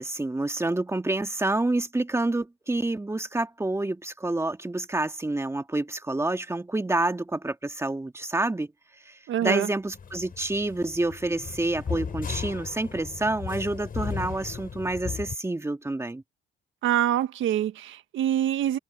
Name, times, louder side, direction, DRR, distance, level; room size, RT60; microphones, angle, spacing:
voice 1, 0.0-8.7 9.1-9.2 9.4-16.2, right 2 dB, 15° right, 1.9 m, -28 dB
voice 2, 9.3-9.7 16.8-18.8, right 11 dB, 80° right, 1.6 m, -25 dB
sound 1, 9.9-15.4, left 6 dB, 45° left, 6.1 m, -36 dB
cardioid pair, 90°, 20 cm